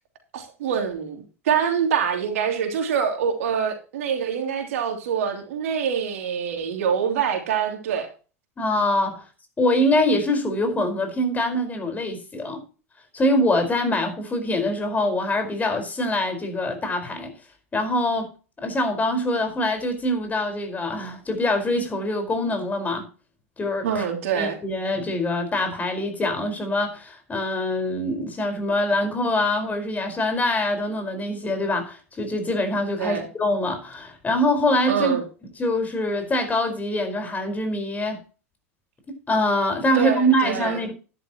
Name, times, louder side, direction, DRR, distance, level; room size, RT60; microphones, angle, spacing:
voice 1, 0.3-8.1 23.8-24.6 33.0-33.3 34.9-35.2 39.9-40.8, right 7 dB, 75° right, 3.0 m, -25 dB
voice 2, 8.6-9.2 9.6-12.6 13.1-17.3 17.7-18.3 18.6-23.1 23.6-24.1 24.4-35.2 35.6-38.2 39.1-40.9, left 1 dB, 20° left, 4.8 m, -24 dB
12.5 x 11.0 x 3.0 m
hypercardioid pair, 90°, 8 cm